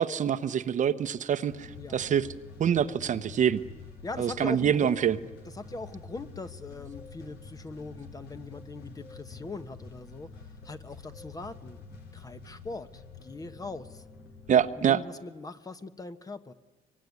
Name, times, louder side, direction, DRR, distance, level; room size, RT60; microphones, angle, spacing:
voice 1, 0.0-2.3 2.6-3.6 4.2-5.2 14.5-15.0, right 9 dB, 45° right, 12 dB, 1.0 m, -25 dB
sound 1, 1.5-14.7, left 4 dB, 75° left, 4.1 m, -47 dB
voice 2, 4.0-5.0 5.5-10.3 10.6-14.0 14.5-16.5, left 3 dB, 20° left, 11 dB, 1.2 m, -41 dB
24.0 x 24.0 x 9.7 m, 1.2 s
cardioid pair, 110°, 17 cm